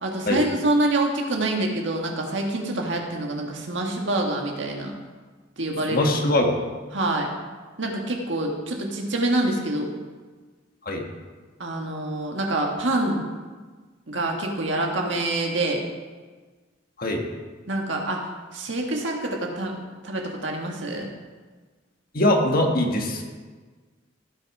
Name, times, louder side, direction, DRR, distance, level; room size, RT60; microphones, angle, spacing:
voice 1, 0.0-4.9 5.6-6.1 6.9-7.3 7.8-9.9 11.6-13.2 14.1-15.9 17.7-18.2 18.5-19.8 20.0-21.1, right 2 dB, 70° right, 1 dB, 1.8 m, -26 dB
voice 2, 5.9-6.7 10.8-11.0 17.0-17.2 22.1-23.2, left 1 dB, 50° left, 2 dB, 1.6 m, -22 dB
16.5 x 6.2 x 4.9 m, 1.4 s
head